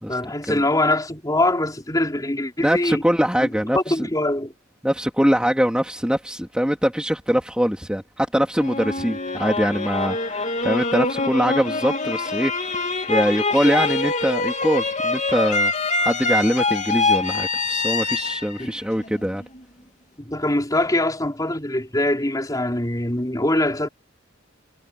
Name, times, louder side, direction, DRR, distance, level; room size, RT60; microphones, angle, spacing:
voice 1, 0.1-3.0 3.4-3.5 3.7-4.5 18.6-18.7 20.2-23.9, left 1 dB, 20° left, 3.9 m, -23 dB
voice 2, 2.6-4.1 4.8-12.5 13.1-15.7 16.0-19.4, equal, 5° right, 2.4 m, -22 dB
sound 1, 8.6-19.6, left 3 dB, 40° left, 2.7 m, -24 dB
head